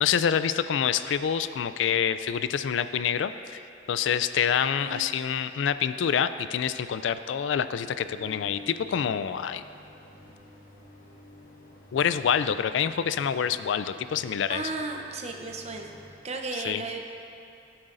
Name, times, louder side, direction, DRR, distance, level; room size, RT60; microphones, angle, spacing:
voice 1, 0.0-3.6 3.9-9.6 11.9-14.6 16.5-16.8, left 8 dB, 75° left, 12 dB, 0.3 m, -27 dB
voice 2, 4.7-5.2 14.5-15.9 16.2-17.0, right 3 dB, 35° right, 3 dB, 0.7 m, -34 dB
sound 1, 8.0-16.1, left 1 dB, 40° left, 1.7 m, -50 dB
16.0 x 8.7 x 2.6 m, 2.6 s
head